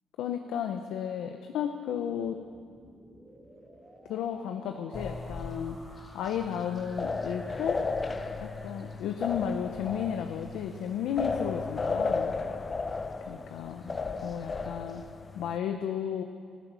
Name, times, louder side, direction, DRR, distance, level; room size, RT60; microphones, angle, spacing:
voice 1, 0.2-2.4 4.0-7.8 8.4-12.4 13.3-15.0 15.3-16.2, left 8 dB, 85° left, 5 dB, 0.8 m, -33 dB
sound 1, 1.9-9.9, right 1 dB, 15° right, 2.4 m, -55 dB
sound 2, 4.9-15.6, left 4 dB, 30° left, 0.8 m, -35 dB
15.0 x 12.0 x 7.6 m, 2.1 s
cardioid pair, 90°, 0 cm